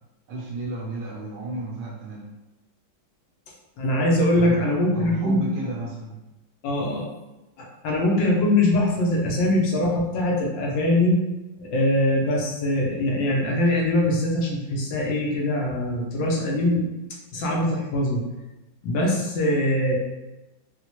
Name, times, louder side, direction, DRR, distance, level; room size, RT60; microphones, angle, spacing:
voice 1, 0.3-2.3 4.3-4.6 4.9-6.2, right 2 dB, 70° right, -2 dB, 1.1 m, -33 dB
voice 2, 3.8-5.4 6.6-7.0 7.6-11.2 11.6-16.9 17.3-18.2 18.8-20.0, left 1 dB, 75° left, -1 dB, 1.4 m, -22 dB
4.3 x 2.1 x 2.8 m, 1.0 s
omnidirectional pair, 2.1 m